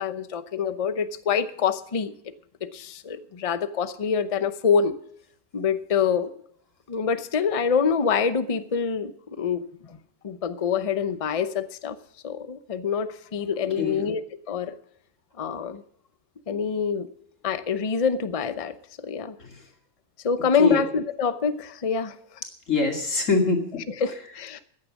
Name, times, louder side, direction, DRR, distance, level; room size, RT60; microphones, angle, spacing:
voice 1, 0.0-2.1 2.7-4.9 5.5-6.3 6.9-10.0 10.2-12.0 12.2-14.2 14.5-14.7 15.4-15.8 16.5-17.1 17.4-19.4 20.2-22.2 24.0-24.6, left 6 dB, 35° left, 12 dB, 0.6 m, -26 dB
voice 2, 13.8-14.1 19.4-19.6 20.6-20.8 22.7-23.8, left 4 dB, 50° left, 2 dB, 3.0 m, -24 dB
14.5 x 9.9 x 6.2 m, 0.69 s
omnidirectional pair, 1.6 m